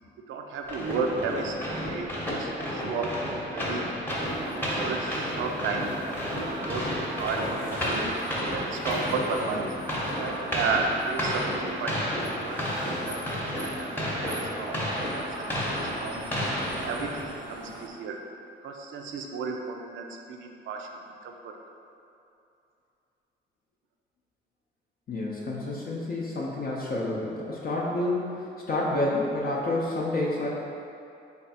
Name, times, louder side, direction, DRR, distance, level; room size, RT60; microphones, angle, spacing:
voice 1, 0.3-3.8 4.4-8.1 8.5-9.6 10.2-13.9 14.3-16.2 16.7-18.2 18.6-20.9 21.2-21.6, right 4 dB, 75° right, 2 dB, 0.4 m, -33 dB
sound 1, 0.7-17.4, equal, 10° left, 0.8 m, -31 dB
sound 2, 4.1-17.9, right 1 dB, 25° right, 0.5 m, -41 dB
Bicycle, 6.8-9.7, left 1 dB, 75° left, 0.8 m, -47 dB
voice 2, 25.1-30.5, left 2 dB, 50° left, -4 dB, 0.6 m, -29 dB
3.3 x 2.3 x 4.1 m, 2.7 s
cardioid pair, 90°, 20 cm